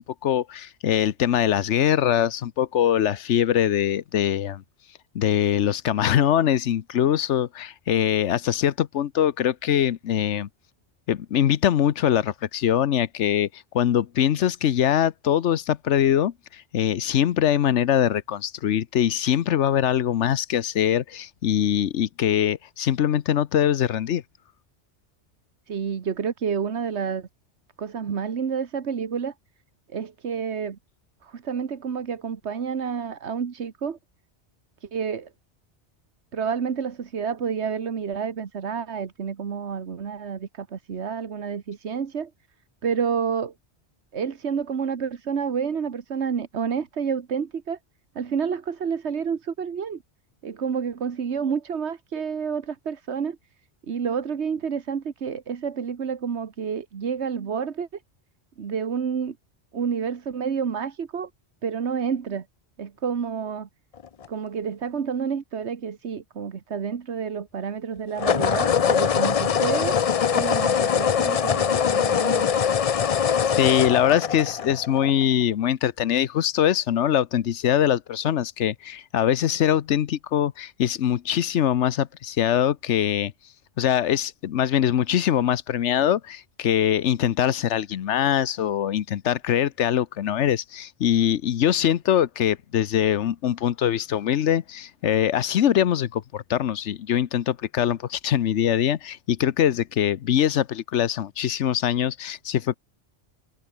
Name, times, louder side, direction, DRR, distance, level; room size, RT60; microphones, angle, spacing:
voice 1, 0.0-4.6 5.1-10.5 11.1-13.5 13.7-24.2 73.6-83.3 83.8-102.8, left 10 dB, 85° left, 1.1 m, -23 dB
voice 2, 25.7-27.3 27.8-29.3 29.9-30.8 31.2-34.0 34.8-35.3 36.3-42.3 42.8-43.5 44.1-47.8 48.1-50.0 50.4-53.4 53.9-58.0 58.6-59.4 59.7-61.3 61.6-62.4 62.8-63.7 64.3-70.0 70.3-72.5, right 6 dB, 75° right, 1.6 m, -29 dB
sound 1, 64.0-64.3 68.2-75.2, left 7 dB, 45° left, 0.5 m, -22 dB
omnidirectional pair, 1.2 m